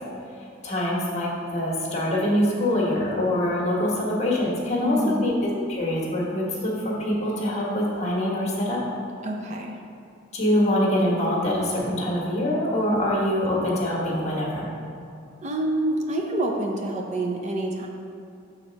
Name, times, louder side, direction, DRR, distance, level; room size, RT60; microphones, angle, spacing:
voice 1, 0.6-5.3 5.7-8.8 10.3-14.7, left 1 dB, 35° left, -4 dB, 1.5 m, -24 dB
voice 2, 4.8-5.3 9.2-9.8 15.4-17.9, right 1 dB, 35° right, 1 dB, 0.6 m, -27 dB
6.8 x 4.2 x 5.2 m, 2.5 s
head